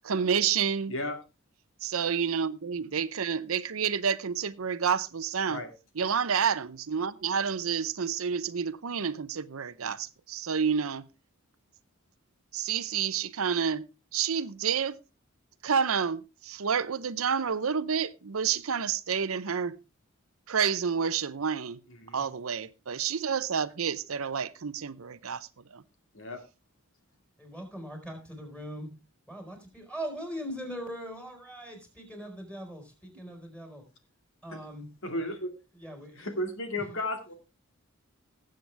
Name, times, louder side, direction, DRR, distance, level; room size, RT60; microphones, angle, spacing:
voice 1, 0.0-0.9 1.8-5.6 6.0-11.0 12.5-13.8 14.1-15.0 15.6-19.8 20.5-21.8 22.1-25.5 25.7-25.8, right 7 dB, 75° right, 0.7 m, -29 dB
voice 2, 27.4-28.9 29.3-33.8 34.4-34.9 35.7-36.3 36.8-36.9, equal, 5° left, 4.3 m, -40 dB
voice 3, 35.0-35.5 36.1-37.3, left 1 dB, 65° left, 2.3 m, -34 dB
19.0 x 7.8 x 3.4 m
head